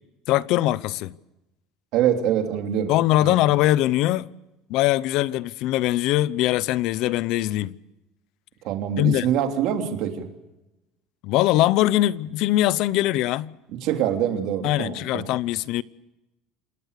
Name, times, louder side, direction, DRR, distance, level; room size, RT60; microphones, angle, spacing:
voice 1, 0.3-1.1 2.9-4.3 4.7-7.7 9.0-9.3 11.2-13.5 14.6-15.8, left 15 dB, 55° left, 0.7 m, -22 dB
voice 2, 1.9-2.9 3.2-3.4 8.6-10.3 13.8-15.3, right 9 dB, 55° right, 3.1 m, -24 dB
28.0 x 19.0 x 6.7 m
cardioid pair, 160°, 0 cm